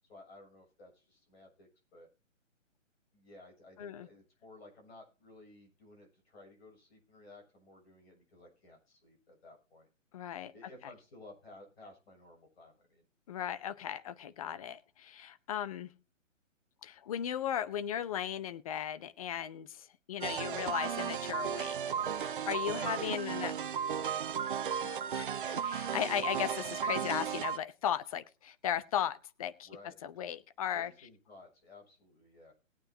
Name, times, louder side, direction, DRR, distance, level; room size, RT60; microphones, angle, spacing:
voice 1, 0.0-2.1 3.1-9.9 10.5-13.0 21.9-22.2 22.8-23.0 29.6-30.0 30.7-32.5, left 2 dB, 50° left, 3 dB, 6.9 m, -56 dB
voice 2, 10.1-10.5 13.3-16.0 16.8-21.8 22.2-23.5 24.8-29.7 30.0-30.9, left 9 dB, 30° left, 14 dB, 0.7 m, -36 dB
sound 1, 20.2-27.6, right 8 dB, 45° right, 0.5 m, -35 dB
20.0 x 8.7 x 2.7 m, 0.32 s
figure-of-eight pair, 135°, 38 cm